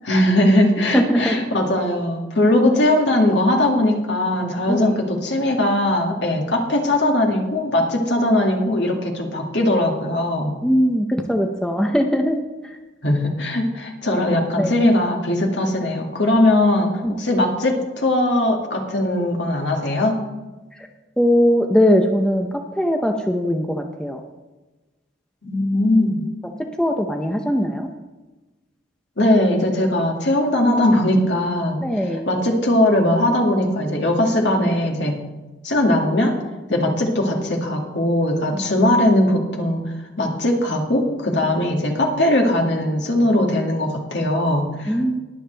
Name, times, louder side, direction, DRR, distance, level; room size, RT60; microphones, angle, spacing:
voice 1, 0.1-10.6 13.0-16.9 17.2-20.2 25.4-26.3 29.2-31.8 32.3-35.2 35.6-36.3 36.7-39.8 40.2-45.0, left 1 dB, 65° left, 1 dB, 2.1 m, -19 dB
voice 2, 0.9-1.4 4.7-4.9 10.6-12.8 14.6-14.7 17.0-17.1 21.2-22.5 22.8-24.2 26.8-27.9 31.8-32.3 36.7-36.8 44.9-45.2, equal, 5° left, 3 dB, 0.6 m, -20 dB
20.5 x 7.2 x 3.4 m, 1.1 s
head